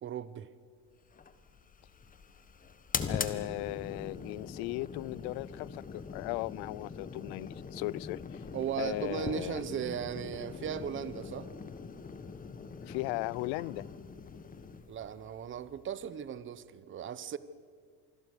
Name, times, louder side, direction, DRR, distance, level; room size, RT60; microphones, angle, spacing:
voice 1, 0.0-0.5 8.5-11.5 14.9-17.4, right 9 dB, 30° right, 0.9 m, -37 dB
sound 1, 1.1-16.4, left 5 dB, 20° left, 1.4 m, -42 dB
voice 2, 3.1-8.4 8.8-9.6 12.8-13.9, left 22 dB, 75° left, 0.5 m, -37 dB
27.5 x 20.5 x 6.6 m
cardioid pair, 135°, 38 cm